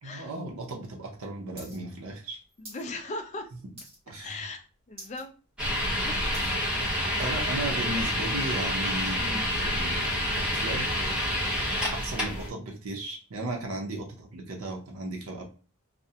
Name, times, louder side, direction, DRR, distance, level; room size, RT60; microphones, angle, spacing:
voice 1, 0.0-2.4 4.1-4.4 7.2-10.2 10.5-10.9 11.9-15.4, right 2 dB, 70° right, 1 dB, 0.6 m, -35 dB
sound 1, 1.6-1.8 2.0-2.9 3.2-3.5 3.8-4.2 4.6-4.7 4.9-5.2 5.7-6.6 7.3-7.4, equal, 25° right, 1.0 m, -47 dB
voice 2, 2.6-3.5 3.8-5.3 6.0-6.5 7.0-7.2 9.2-9.4, left 2 dB, 30° left, 6 dB, 0.3 m, -39 dB
sound 2, 5.6-12.5, left 1 dB, 5° right, 0.7 m, -28 dB
2.4 x 2.0 x 2.7 m, 0.37 s
head